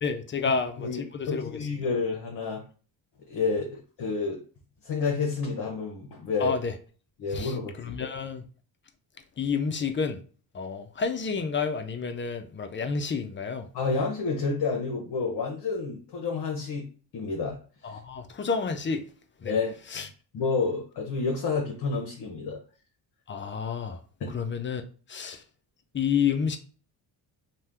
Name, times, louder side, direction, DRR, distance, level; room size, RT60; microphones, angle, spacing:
voice 1, 0.0-1.6 6.4-6.7 7.3-8.4 9.4-10.2 10.5-13.7 17.8-19.0 19.4-19.5 19.9-20.1 23.3-24.0 24.3-24.8 25.1-25.4 25.9-26.6, left 5 dB, 25° left, 0.4 m, -30 dB
voice 2, 1.3-2.6 3.3-3.7 4.0-4.4 4.8-6.6 7.2-8.1 13.7-16.8 17.1-17.6 19.4-20.0 20.3-22.6 24.2-24.3 25.2-25.3, left 4 dB, 55° left, 0.8 m, -29 dB
2.7 x 2.2 x 3.4 m
cardioid pair, 75°, 47 cm